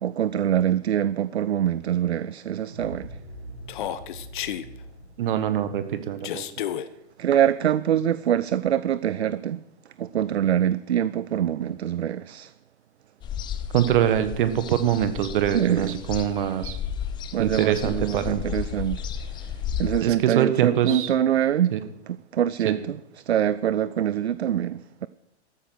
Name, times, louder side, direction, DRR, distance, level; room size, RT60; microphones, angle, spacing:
voice 1, 0.0-3.2 7.2-9.6 10.0-12.5 15.5-16.0 17.3-21.8 22.1-23.0 23.3-25.1, right 10 dB, 70° right, 0.5 m, -24 dB
sound 1, 2.6-7.4, equal, 70° left, 4.6 m, -44 dB
Human voice, 3.7-4.7 6.2-6.9, left 11 dB, 45° left, 0.9 m, -31 dB
voice 2, 5.2-6.4 13.7-16.8 17.4-18.4 20.0-21.1 21.7-21.8 22.6-22.7, right 10 dB, 50° right, 1.5 m, -24 dB
sound 2, 13.2-20.0, left 8 dB, 15° left, 0.6 m, -33 dB
13.5 x 9.4 x 6.3 m
figure-of-eight pair, 110°, 34 cm